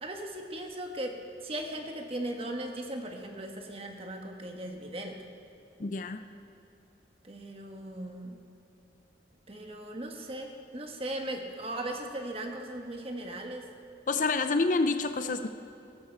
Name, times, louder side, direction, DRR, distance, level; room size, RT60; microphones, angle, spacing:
voice 1, 0.0-5.2 7.2-8.4 9.5-13.7, right 1 dB, 30° right, 3 dB, 1.3 m, -38 dB
voice 2, 5.8-6.2 14.1-15.5, left 3 dB, 45° left, 9 dB, 0.5 m, -28 dB
20.0 x 11.5 x 4.6 m, 2.8 s
head